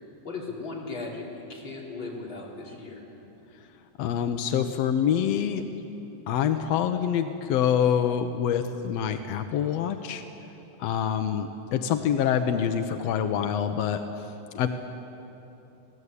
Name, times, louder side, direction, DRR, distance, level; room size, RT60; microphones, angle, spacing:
voice 1, 0.2-3.0, left 3 dB, 35° left, -4 dB, 4.5 m, -37 dB
voice 2, 4.0-5.6 6.3-10.2 10.8-14.7, left 8 dB, 75° left, 7 dB, 1.5 m, -26 dB
25.5 x 18.0 x 8.3 m, 3.0 s
omnidirectional pair, 3.9 m